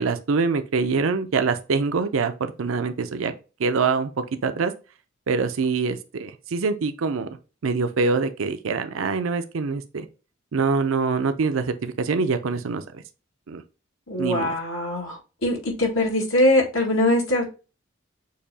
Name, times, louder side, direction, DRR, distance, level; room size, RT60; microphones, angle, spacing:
voice 1, 0.0-3.3 3.6-4.7 5.3-7.3 7.6-10.1 10.5-13.0 13.5-13.6 14.2-14.5, right 4 dB, 80° right, 0.5 m, -24 dB
voice 2, 14.1-17.5, left 1 dB, 85° left, 1.8 m, -22 dB
6.6 x 2.8 x 2.7 m
head